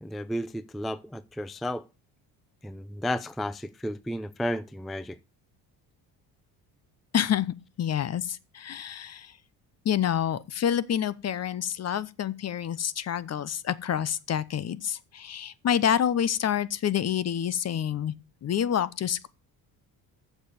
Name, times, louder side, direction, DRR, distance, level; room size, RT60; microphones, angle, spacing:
voice 1, 0.0-1.8 2.6-5.2, equal, ahead, 0.4 m, -33 dB
voice 2, 7.1-9.3 9.8-18.1 18.4-19.3, left 9 dB, 40° left, 0.8 m, -28 dB
7.3 x 6.9 x 6.9 m
cardioid pair, 90°, 39 cm